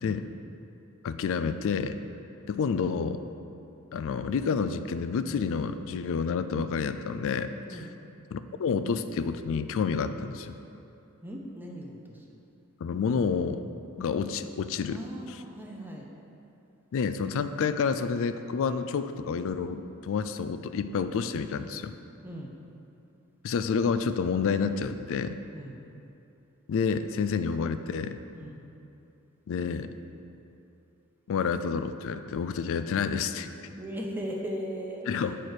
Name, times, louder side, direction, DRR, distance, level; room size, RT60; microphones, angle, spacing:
voice 1, 1.0-2.0 2.5-3.2 3.9-7.8 8.3-10.5 12.8-13.6 14.0-15.0 16.9-21.9 23.4-25.4 26.7-28.2 29.5-29.9 31.3-33.5 35.1-35.4, left 5 dB, 65° left, 11 dB, 0.3 m, -29 dB
voice 2, 7.6-7.9 11.2-12.4 14.9-16.1 22.2-22.5 25.5-25.8 28.3-28.6 33.8-35.4, equal, 10° right, -1 dB, 0.6 m, -38 dB
8.1 x 4.5 x 4.7 m, 2.7 s
head